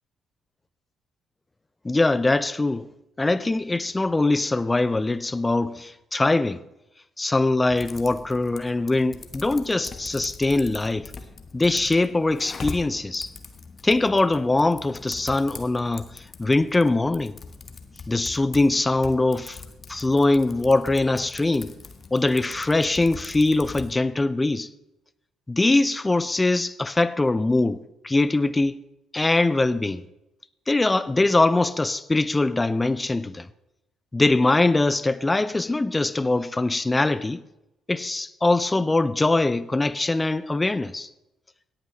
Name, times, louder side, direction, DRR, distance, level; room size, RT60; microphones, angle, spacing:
voice 1, 1.8-2.9 3.2-6.6 7.2-11.1 11.5-13.3 13.8-16.1 16.4-17.4 18.1-19.6 19.9-21.7 22.1-24.7 25.5-28.8 29.1-30.0 30.7-33.5 34.1-37.4 37.9-41.1, left 2 dB, 20° left, 0.5 m, -22 dB
Typing, 7.7-23.9, left 4 dB, 40° left, 1.2 m, -42 dB
17.5 x 8.8 x 3.1 m
figure-of-eight pair, 45°, 0 cm